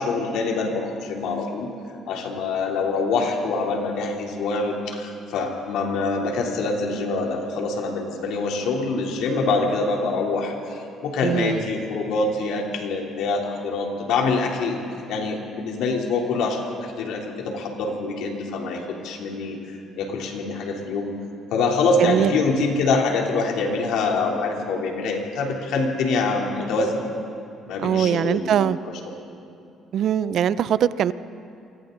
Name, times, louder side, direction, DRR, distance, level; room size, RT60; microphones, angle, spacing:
voice 1, 0.0-1.7 2.1-14.8 15.1-19.6 20.0-21.1 21.5-27.0 27.7-28.7, left 3 dB, 80° left, 0 dB, 3.4 m, -25 dB
voice 2, 11.2-11.6 22.0-22.3 27.8-28.8 29.9-31.1, right 9 dB, 65° right, 16 dB, 0.6 m, -21 dB
29.5 x 24.0 x 4.0 m, 2.6 s
cardioid pair, 85°, 0 cm